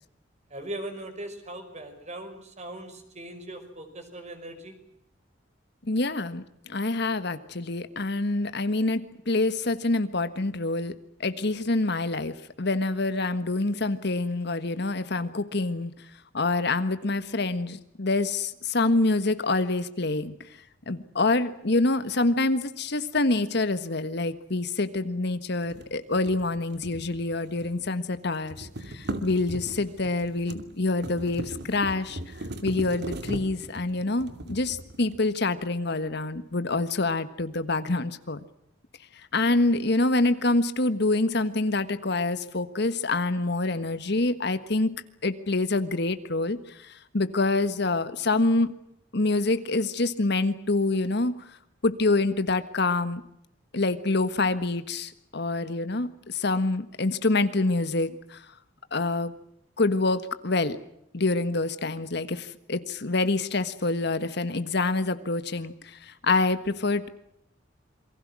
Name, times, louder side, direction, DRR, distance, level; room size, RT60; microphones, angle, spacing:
voice 1, 0.5-4.8, right 1 dB, 40° right, 7 dB, 5.3 m, -39 dB
voice 2, 5.9-6.4 6.7-10.9 11.2-15.9 16.3-20.3 20.9-32.2 32.6-38.4 39.3-44.9 45.2-48.7 49.1-51.3 51.8-53.2 53.7-58.4 58.9-59.3 59.8-60.8 61.1-67.1, left 2 dB, 65° left, 11 dB, 1.5 m, -26 dB
sound 1, 25.6-27.9 28.1-35.4, right 1 dB, 65° right, 2.7 m, -39 dB
28.0 x 23.5 x 6.2 m, 0.78 s
head